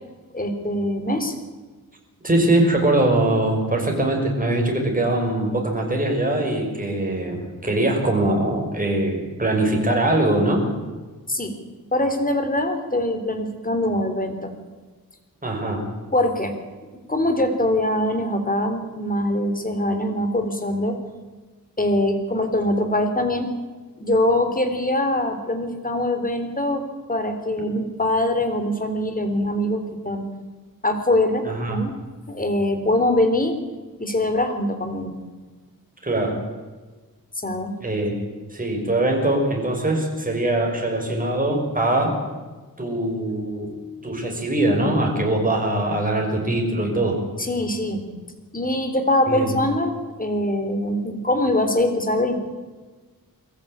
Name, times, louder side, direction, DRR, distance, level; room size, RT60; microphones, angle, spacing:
voice 1, 0.3-1.4 11.3-11.6 11.9-14.5 16.1-16.5 17.1-21.0 21.8-23.5 24.0-26.8 27.1-30.3 30.8-31.9 32.3-33.6 34.0-35.2 37.4-37.8 47.4-48.1 48.5-52.4, left 1 dB, 25° left, 7 dB, 3.6 m, -23 dB
voice 2, 2.2-10.6 15.4-15.8 31.5-31.8 36.0-36.4 37.8-38.1 38.5-42.2 42.8-43.7 44.0-47.2 49.3-49.5, right 1 dB, 25° right, 1 dB, 6.0 m, -22 dB
22.5 x 14.5 x 8.8 m, 1.3 s
wide cardioid pair, 90°, 35 cm